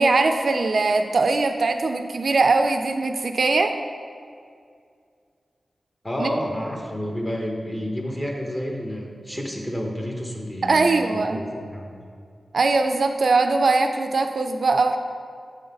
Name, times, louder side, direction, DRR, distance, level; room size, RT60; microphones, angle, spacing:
voice 1, 0.0-3.7 6.2-6.3 10.6-11.4 12.5-15.0, right 3 dB, 60° right, 6 dB, 0.4 m, -21 dB
voice 2, 6.0-12.0, equal, 15° left, 1 dB, 1.0 m, -30 dB
7.2 x 3.9 x 5.2 m, 2.3 s
wide cardioid pair, 105°, 0 cm